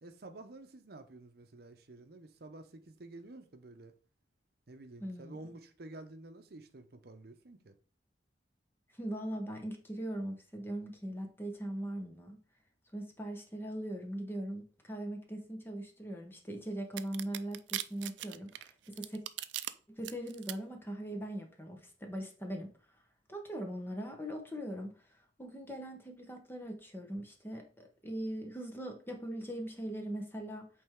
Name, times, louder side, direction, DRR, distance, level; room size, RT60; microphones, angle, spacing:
voice 1, 0.0-3.9 4.7-7.7, right 2 dB, 60° right, 0.7 m, -51 dB
voice 2, 5.0-5.4 9.0-12.4 12.9-19.2 19.9-22.7 23.3-30.7, right 1 dB, 10° left, 1.0 m, -40 dB
sound 1, 17.0-19.7 20.0-20.5, right 14 dB, 85° right, 0.4 m, -38 dB
8.5 x 3.4 x 3.6 m
head